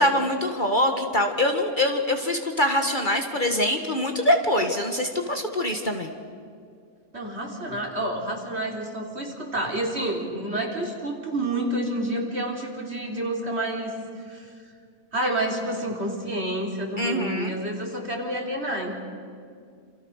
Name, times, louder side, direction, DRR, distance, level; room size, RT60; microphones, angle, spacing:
voice 1, 0.0-6.1 17.0-17.6, left 1 dB, 35° left, 4 dB, 1.8 m, -24 dB
voice 2, 7.1-14.5 15.1-18.9, right 1 dB, 45° right, 0 dB, 4.0 m, -29 dB
28.0 x 28.0 x 6.5 m, 2.3 s
omnidirectional pair, 1.5 m